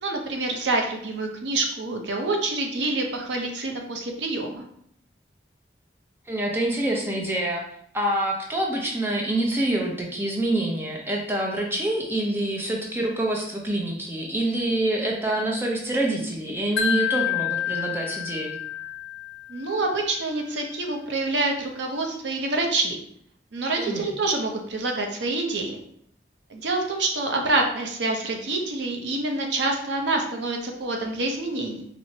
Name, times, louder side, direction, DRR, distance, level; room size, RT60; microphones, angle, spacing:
voice 1, 0.0-4.6 19.5-23.0 23.5-25.8 26.5-31.8, right 2 dB, 85° right, 2 dB, 0.6 m, -27 dB
voice 2, 6.3-7.6 7.9-18.6 23.8-24.1, right 1 dB, 15° right, -1 dB, 0.5 m, -26 dB
Wind chime, 16.8-19.9, left 10 dB, 75° left, 0.5 m, -28 dB
4.3 x 2.0 x 2.7 m, 0.68 s
head